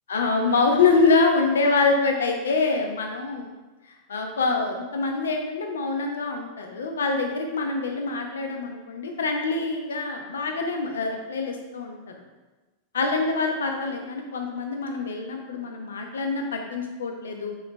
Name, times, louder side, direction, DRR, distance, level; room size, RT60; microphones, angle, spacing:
voice 1, 0.1-3.5 3.9-12.0 12.9-17.5, left 4 dB, 65° left, 3 dB, 0.5 m, -25 dB
3.9 x 2.9 x 3.2 m, 1.2 s
figure-of-eight pair, 90°, 0 cm